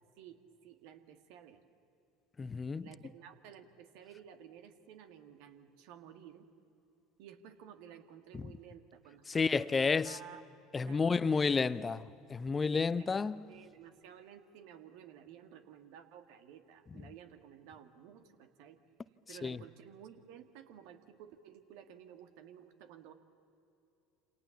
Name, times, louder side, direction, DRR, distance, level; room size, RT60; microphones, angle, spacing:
voice 1, 0.2-1.6 2.8-6.5 7.2-10.4 10.9-11.3 12.7-18.8 19.3-23.1, right 9 dB, 60° right, 1.9 m, -54 dB
voice 2, 2.4-2.9 8.3-8.5 9.3-10.2 10.7-13.5 16.9-17.0 19.3-19.6, left 4 dB, 25° left, 0.7 m, -31 dB
28.0 x 27.5 x 7.2 m
figure-of-eight pair, 70°, 0 cm